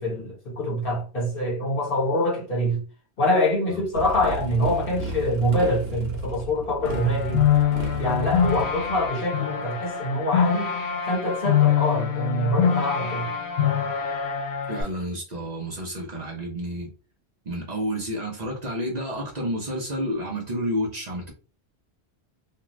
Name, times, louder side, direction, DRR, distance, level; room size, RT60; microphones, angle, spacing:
voice 1, 0.0-2.8 3.2-7.5 8.0-10.8 11.1-13.3, left 1 dB, 60° left, 1.3 m, -25 dB
Motorcycle, 3.9-9.1, right 1 dB, 70° right, 1.0 m, -33 dB
sound 1, 6.8-14.8, left 8 dB, 80° left, 0.9 m, -24 dB
voice 2, 14.7-16.9 17.5-21.3, equal, 45° right, 0.7 m, -30 dB
2.4 x 2.4 x 3.0 m
omnidirectional pair, 1.1 m